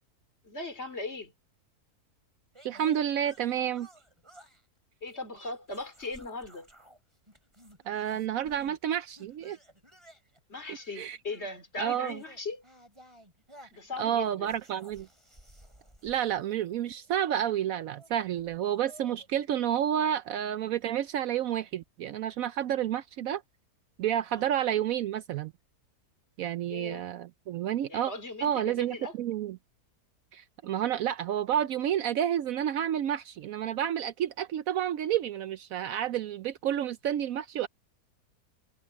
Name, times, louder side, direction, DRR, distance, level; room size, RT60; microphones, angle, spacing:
voice 1, 0.4-1.3 5.0-6.7 10.5-12.6 13.7-14.5 24.4-24.5 26.7-27.0 27.9-29.1, left 3 dB, 45° left, 3.1 m, -39 dB
sound 1, 2.5-4.6 5.1-7.0 7.3-8.8 9.2-17.1 17.9-19.3, right 1 dB, 20° right, 6.4 m, -56 dB
voice 2, 2.6-3.9 7.9-9.6 10.7-11.2 11.8-12.2 14.0-15.1 16.0-23.4 24.0-25.5 26.4-28.1 28.4-29.6 30.3-37.7, right 10 dB, 70° right, 1.0 m, -30 dB
omnidirectional pair, 1.7 m